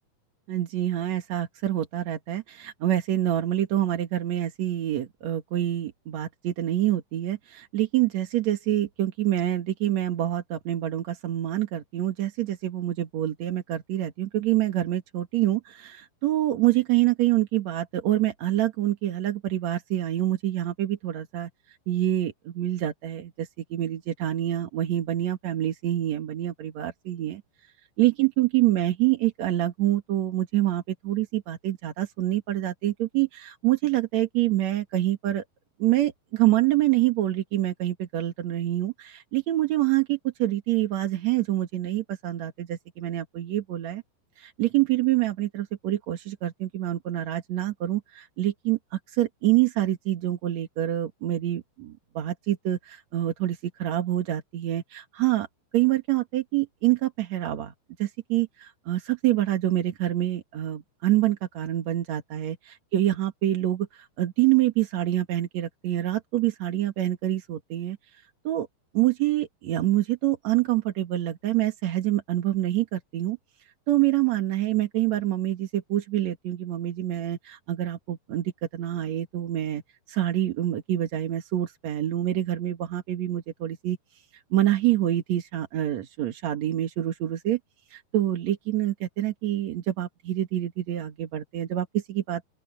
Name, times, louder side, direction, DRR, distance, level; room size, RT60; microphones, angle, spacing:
voice 1, 0.5-21.5 21.9-27.4 28.0-35.4 35.8-44.0 44.4-55.5 55.7-57.7 58.0-68.0 68.4-68.7 68.9-73.4 73.9-79.8 80.1-84.0 84.5-87.6 87.9-92.4, right 14 dB, 60° right, 2.0 m, -26 dB
open air
omnidirectional pair, 5.1 m